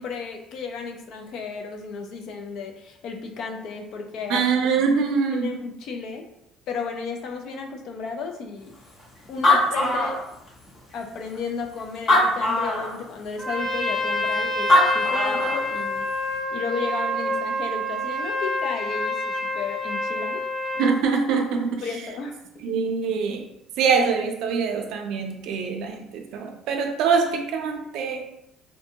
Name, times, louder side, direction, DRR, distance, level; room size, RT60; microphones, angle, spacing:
voice 1, 0.0-4.4 5.3-6.3 6.7-8.7 9.3-10.2 10.9-16.1 16.5-20.4 20.7-20.8 21.8-22.8, left 5 dB, 60° left, 3 dB, 0.4 m, -33 dB
voice 2, 4.3-5.6 20.8-21.8 22.6-23.4 23.8-28.3, right 5 dB, 70° right, 3 dB, 0.4 m, -24 dB
Animal, 9.0-9.1 9.3-10.7 11.3-11.4 12.0-13.0 14.4-14.5 14.7-15.6, left 1 dB, 45° left, 0.8 m, -20 dB
Trumpet, 13.4-21.0, left 1 dB, 20° right, 0.5 m, -27 dB
2.6 x 2.2 x 2.7 m, 0.81 s
cardioid pair, 135°, 0 cm